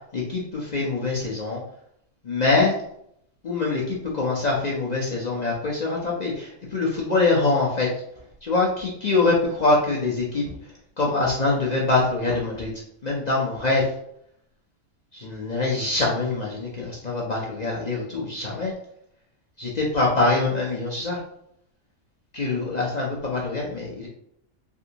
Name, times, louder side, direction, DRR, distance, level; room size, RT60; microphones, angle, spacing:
voice 1, 0.1-1.6 2.2-2.7 3.4-7.9 8.4-12.7 13.0-13.9 15.1-18.7 19.6-21.2 22.3-24.1, left 3 dB, 50° left, -4 dB, 0.5 m, -24 dB
3.5 x 2.5 x 2.8 m, 0.72 s
omnidirectional pair, 1.3 m